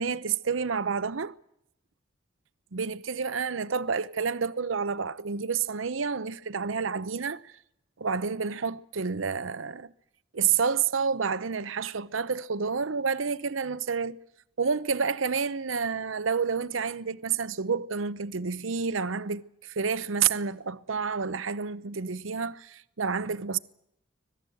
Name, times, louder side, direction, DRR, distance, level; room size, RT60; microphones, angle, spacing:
voice 1, 0.0-1.3 2.7-7.5 8.0-9.9 10.3-14.2 14.6-23.6, right 6 dB, 90° right, 0.8 m, -29 dB
25.5 x 18.5 x 7.8 m
head